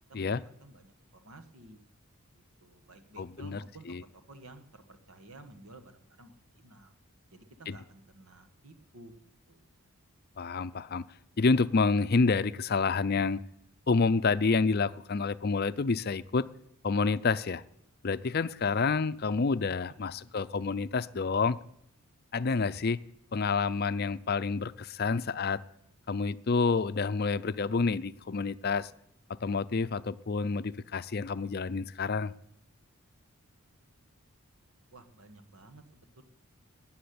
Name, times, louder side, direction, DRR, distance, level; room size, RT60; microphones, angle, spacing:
voice 1, 0.1-1.8 2.3-7.0 7.3-9.7 20.1-20.7 34.9-36.2, right 2 dB, 75° right, 8 dB, 1.6 m, -53 dB
voice 2, 3.2-3.6 3.9-4.0 7.7-7.8 10.4-11.0 11.4-13.4 13.9-16.5 16.8-17.6 18.0-21.6 22.3-23.0 23.3-25.6 26.1-28.9 29.4-32.3, left 4 dB, 45° left, 14 dB, 0.5 m, -28 dB
13.5 x 9.5 x 9.6 m, 0.75 s
head